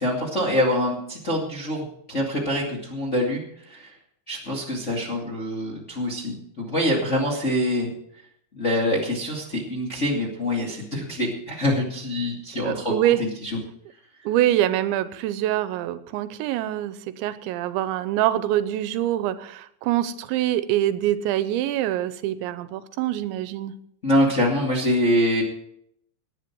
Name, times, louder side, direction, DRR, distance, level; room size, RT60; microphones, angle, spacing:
voice 1, 0.0-3.4 3.7-3.9 4.3-7.9 8.5-13.1 13.4-13.6 24.0-25.4, left 1 dB, 25° left, -3 dB, 1.5 m, -25 dB
voice 2, 12.6-13.2 14.3-23.7, right 13 dB, 90° right, 13 dB, 3.1 m, -25 dB
18.0 x 10.5 x 4.6 m, 0.70 s
omnidirectional pair, 5.2 m